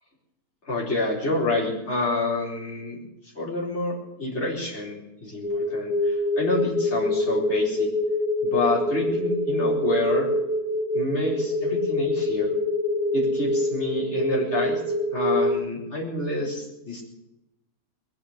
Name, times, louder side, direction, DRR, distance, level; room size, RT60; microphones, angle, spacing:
voice 1, 0.7-3.0 3.3-7.9 8.4-10.3 10.9-12.5 13.1-14.8 15.1-17.0, left 2 dB, 45° left, -4 dB, 4.6 m, -28 dB
sound 1, 5.4-15.6, left 1 dB, 30° left, 5.7 m, -25 dB
21.0 x 9.4 x 6.6 m, 0.93 s
omnidirectional pair, 1.6 m